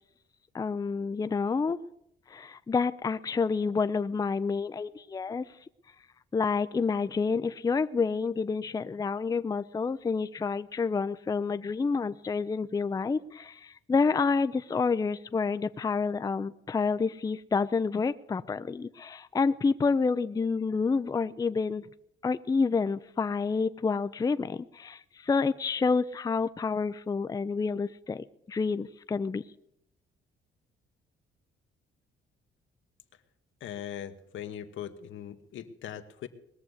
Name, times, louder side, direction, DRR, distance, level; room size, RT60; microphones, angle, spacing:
voice 1, 0.5-1.8 2.3-5.5 6.3-21.8 22.2-29.4, left 4 dB, 20° left, 12 dB, 0.4 m, -29 dB
voice 2, 33.6-36.3, left 10 dB, 75° left, 8 dB, 1.2 m, -40 dB
20.0 x 6.9 x 7.9 m, 0.78 s
cardioid pair, 90°, 20 cm